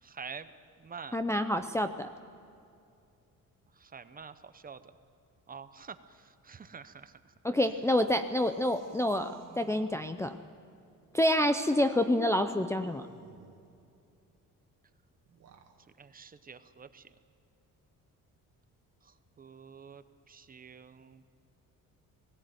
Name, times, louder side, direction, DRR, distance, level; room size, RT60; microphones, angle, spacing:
voice 1, 0.0-0.5 0.8-1.2 3.8-4.9 5.5-7.3 16.0-17.1 19.0-21.2, right 6 dB, 25° right, 12 dB, 0.8 m, -47 dB
voice 2, 1.1-2.1 7.4-10.4 11.1-13.1, left 1 dB, 10° left, 6 dB, 0.5 m, -28 dB
sound 1, 7.7-10.0 11.9-13.7 15.3-15.8, right 6 dB, 50° right, 2.0 m, -50 dB
18.5 x 17.0 x 9.2 m, 2.6 s
cardioid pair, 145°, 34 cm